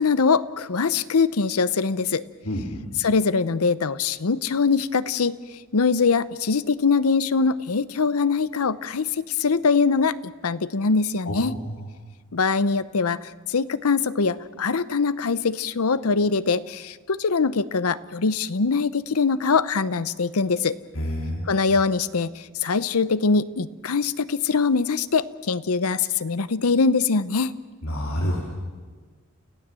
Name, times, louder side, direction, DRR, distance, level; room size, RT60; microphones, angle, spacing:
voice 1, 0.0-2.2 3.0-5.4 5.7-10.2 10.4-11.6 12.3-20.8 21.5-27.5, left 4 dB, 85° left, 16 dB, 0.7 m, -23 dB
voice 2, 2.4-2.9 11.3-11.6 20.9-21.5 27.8-28.4, equal, 70° left, -1 dB, 3.4 m, -28 dB
29.5 x 16.0 x 7.6 m, 1.4 s
head